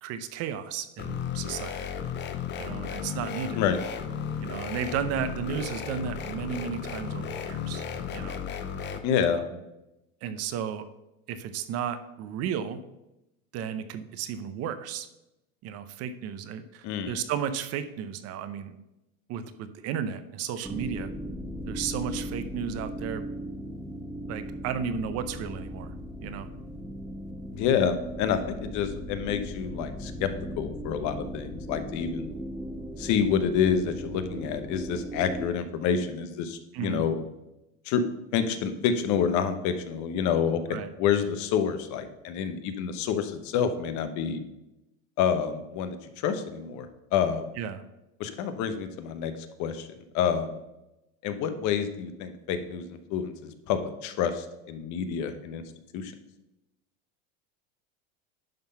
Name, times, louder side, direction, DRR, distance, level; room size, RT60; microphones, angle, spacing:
voice 1, 0.0-1.9 2.6-3.6 4.4-7.8 8.1-8.4 9.3-9.5 10.2-10.8 11.3-12.8 13.5-15.1 15.6-18.7 19.3-21.1 21.7-23.2 24.3-25.9 26.2-26.5 36.7-37.0 40.7-40.9 47.6-47.8, right 8 dB, 45° right, 11 dB, 0.7 m, -33 dB
sound 1, 1.0-9.0, left 7 dB, 30° left, 0.7 m, -34 dB
voice 2, 9.0-9.4 16.8-17.2 27.5-30.3 30.6-32.3 33.0-37.2 37.8-38.0 38.3-44.4 45.2-47.4 48.2-49.3 49.6-49.9 50.1-50.6 51.2-55.6 55.9-56.1, left 7 dB, 55° left, 9 dB, 1.0 m, -28 dB
sound 2, 20.6-35.5, equal, ahead, 0.3 m, -38 dB
10.5 x 3.8 x 5.6 m, 0.92 s
supercardioid pair, 135°, 35 cm